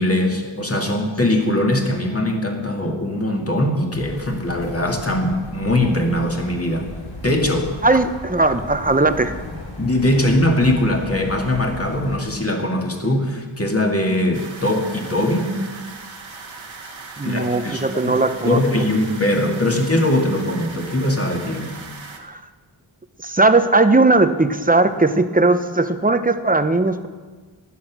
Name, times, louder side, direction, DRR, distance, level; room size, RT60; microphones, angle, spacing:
voice 1, 0.0-6.9 7.2-7.7 9.8-15.5 17.2-18.2 18.5-21.7, left 1 dB, 30° left, 2 dB, 2.4 m, -21 dB
sound 1, 3.9-12.2, left 2 dB, 75° left, 3.1 m, -36 dB
voice 2, 7.8-9.3 17.2-18.6 22.2-22.4 23.2-27.1, right 3 dB, 20° right, 10 dB, 0.9 m, -18 dB
sound 2, 14.3-22.2, right 4 dB, 75° right, 1.7 m, -38 dB
15.5 x 11.0 x 6.2 m, 1.4 s
wide cardioid pair, 75°, 47 cm